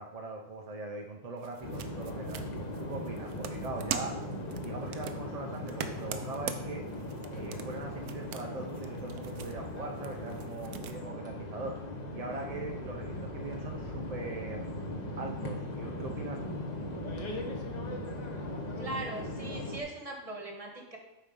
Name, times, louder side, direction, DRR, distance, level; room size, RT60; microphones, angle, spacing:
voice 1, 0.0-2.4 2.8-4.2 4.6-6.9 7.3-11.8 12.1-14.7 15.2-16.6, right 3 dB, 55° right, 1 dB, 0.4 m, -41 dB
sound 1, 1.4-11.0, right 8 dB, 85° right, 1.1 m, -43 dB
sound 2, 1.6-19.8, left 1 dB, 35° left, 0.9 m, -39 dB
voice 2, 18.8-21.0, right 2 dB, 25° right, 1 dB, 1.2 m, -40 dB
7.3 x 4.4 x 5.3 m, 0.96 s
omnidirectional pair, 1.5 m